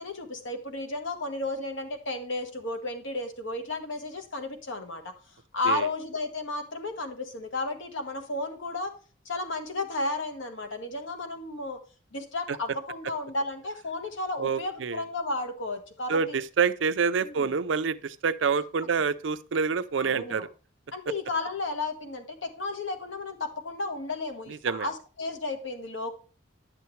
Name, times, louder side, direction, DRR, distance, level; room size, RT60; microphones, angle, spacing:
voice 1, 0.0-5.1 5.5-8.9 9.2-11.8 12.1-16.4 17.2-17.5 20.0-20.5 20.9-26.1, left 2 dB, 75° left, 1.3 m, -33 dB
voice 2, 14.4-15.0 16.1-20.5 24.5-24.9, right 5 dB, 70° right, 0.5 m, -27 dB
10.0 x 6.9 x 3.2 m
head